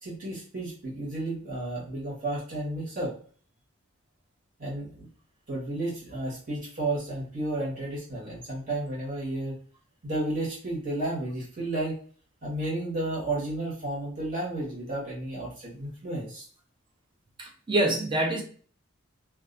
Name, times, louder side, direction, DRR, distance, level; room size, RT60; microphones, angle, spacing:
voice 1, 0.0-3.1 4.6-5.1 5.5-9.6 10.0-11.9 12.4-16.5, right 2 dB, 40° right, -6 dB, 1.2 m, -32 dB
voice 2, 17.4-18.4, right 1 dB, 25° right, 1 dB, 0.5 m, -26 dB
2.5 x 2.3 x 2.5 m, 0.43 s
head